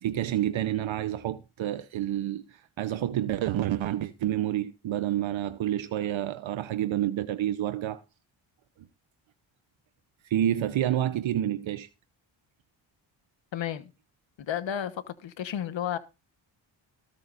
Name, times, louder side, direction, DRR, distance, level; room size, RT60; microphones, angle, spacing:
voice 1, 0.0-8.0 10.2-11.9, right 12 dB, 70° right, 0.8 m, -29 dB
voice 2, 13.5-13.9 14.4-16.0, left 10 dB, 65° left, 1.2 m, -32 dB
23.5 x 8.6 x 2.5 m
cardioid pair, 80°, 48 cm